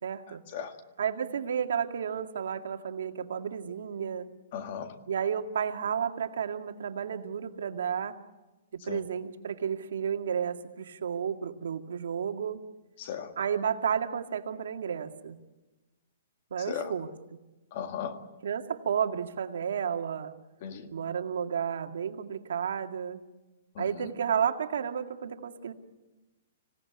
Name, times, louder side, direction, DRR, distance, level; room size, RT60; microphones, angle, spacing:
voice 1, 0.0-0.4 1.0-4.3 5.1-8.2 8.9-12.6 13.4-15.4 16.5-17.1 18.4-20.3 20.9-23.2 23.8-25.7, right 7 dB, 75° right, 5 dB, 2.0 m, -32 dB
voice 2, 4.5-4.9 8.9-9.0 13.0-13.3 16.7-16.9 17.7-18.2 20.6-20.9 23.8-24.1, left 8 dB, 40° left, 8 dB, 1.8 m, -36 dB
26.0 x 17.0 x 9.9 m, 1.1 s
hypercardioid pair, 170°, 0 cm